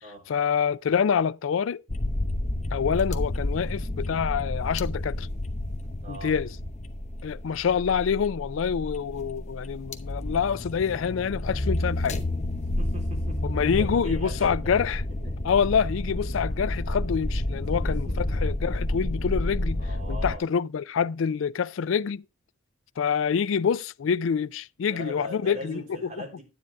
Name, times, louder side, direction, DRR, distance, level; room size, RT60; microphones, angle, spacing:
voice 1, 0.3-1.8 2.7-5.3 6.1-6.5 7.2-12.2 13.4-15.0 15.4-22.2 23.0-25.8, left 7 dB, 80° left, 0.4 m, -26 dB
sound 1, 1.9-20.4, left 1 dB, 35° left, 0.8 m, -30 dB
voice 2, 6.0-6.3 12.8-14.8 15.2-15.3 17.9-18.5 19.8-20.4 24.8-26.4, equal, 35° right, 3.7 m, -41 dB
9.9 x 9.1 x 3.6 m
head